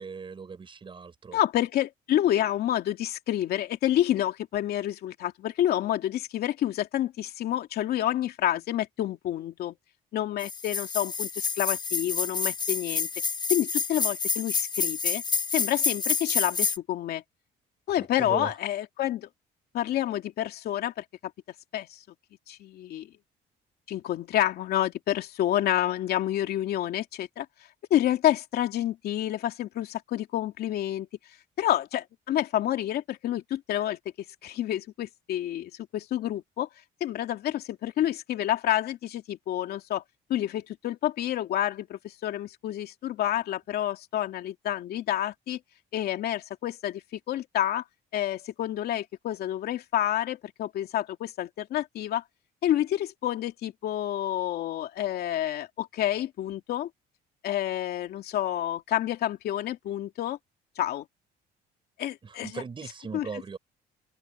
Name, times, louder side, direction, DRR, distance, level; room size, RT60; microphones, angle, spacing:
voice 1, 0.0-1.4 18.0-18.5 62.2-63.6, right 5 dB, 30° right, 4.1 m, -39 dB
voice 2, 1.3-9.7 10.1-13.1 13.5-15.2 15.5-17.2 17.9-19.3 19.7-21.0 21.7-22.0 22.5-23.1 23.9-27.5 27.9-31.1 31.6-34.0 34.4-36.7 37.0-40.0 40.3-45.6 45.9-47.0 47.3-47.8 48.1-52.2 52.6-56.9 57.4-60.4 60.8-61.0 62.0-62.5 63.1-63.3, left 12 dB, 70° left, 2.7 m, -28 dB
sound 1, 10.4-16.8, left 5 dB, 25° left, 1.0 m, -28 dB
open air
cardioid pair, 110°, 17 cm